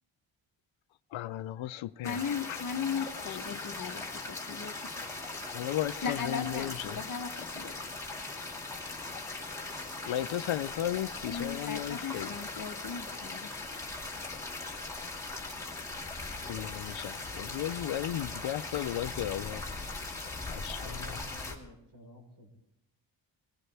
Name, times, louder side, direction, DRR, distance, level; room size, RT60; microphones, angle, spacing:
voice 1, 1.1-2.6 2.9-3.9 5.5-7.0 10.1-12.3 16.5-19.6 20.5-21.2, left 12 dB, 85° left, 0.6 m, -35 dB
voice 2, 2.0-4.9 6.0-7.8 11.3-13.5, left 6 dB, 45° left, 1.0 m, -37 dB
sound 1, 2.0-21.5, left 3 dB, 5° left, 2.1 m, -40 dB
voice 3, 20.6-22.5, left 1 dB, 40° right, 4.1 m, -51 dB
20.5 x 19.5 x 3.4 m
wide cardioid pair, 175°, 46 cm